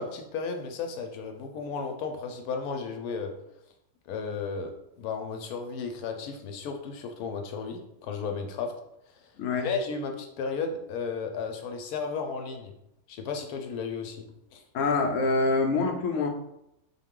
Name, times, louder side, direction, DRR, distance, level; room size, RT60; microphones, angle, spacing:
voice 1, 0.0-3.3 4.1-8.7 9.6-12.7 13.1-14.2 14.5-14.6, left 5 dB, 90° left, 4 dB, 1.1 m, -34 dB
voice 2, 9.4-9.7 14.7-16.3, left 3 dB, 65° left, 2 dB, 0.9 m, -25 dB
3.7 x 2.3 x 3.6 m, 0.82 s
omnidirectional pair, 1.6 m